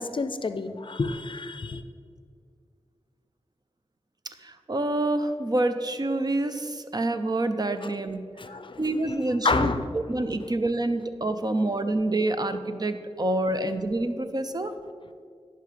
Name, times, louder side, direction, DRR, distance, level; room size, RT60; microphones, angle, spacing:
voice 1, 0.0-1.8 8.4-9.1 9.4-9.9, left 3 dB, 50° left, 11 dB, 0.5 m, -29 dB
voice 2, 4.3-8.2 8.5-14.7, right 2 dB, 35° right, 9 dB, 0.6 m, -27 dB
11.0 x 5.6 x 5.0 m, 2.1 s
cardioid pair, 55°, 11 cm